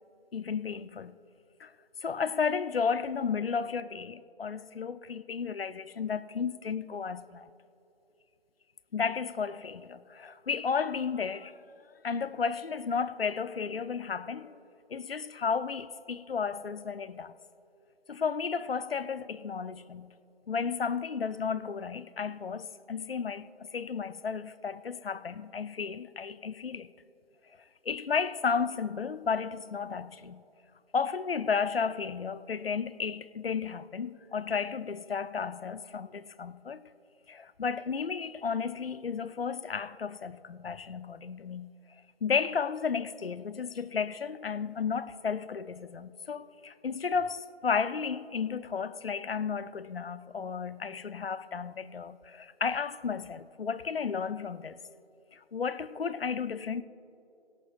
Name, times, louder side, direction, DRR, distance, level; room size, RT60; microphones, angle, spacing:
voice 1, 0.3-1.2 1.6-1.7 2.0-7.5 8.9-11.5 12.0-14.6 14.9-17.3 18.1-20.1 20.5-26.9 27.9-30.4 30.9-36.8 37.3-41.7 42.2-54.8 55.3-56.8, left 6 dB, 65° left, 0.6 m, -33 dB
22.5 x 9.8 x 2.4 m
figure-of-eight pair, 160°, 32 cm